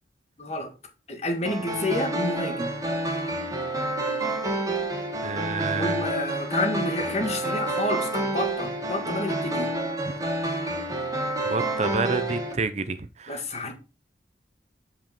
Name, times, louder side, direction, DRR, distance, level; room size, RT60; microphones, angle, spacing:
voice 1, 0.4-0.7 1.1-2.7 5.8-9.7 13.3-13.7, left 1 dB, 35° left, 1.8 m, -29 dB
sound 1, 1.5-12.5, right 1 dB, 20° right, 1.6 m, -29 dB
voice 2, 5.2-6.0 11.5-13.4, right 4 dB, 40° right, 0.6 m, -29 dB
8.1 x 5.4 x 4.4 m
head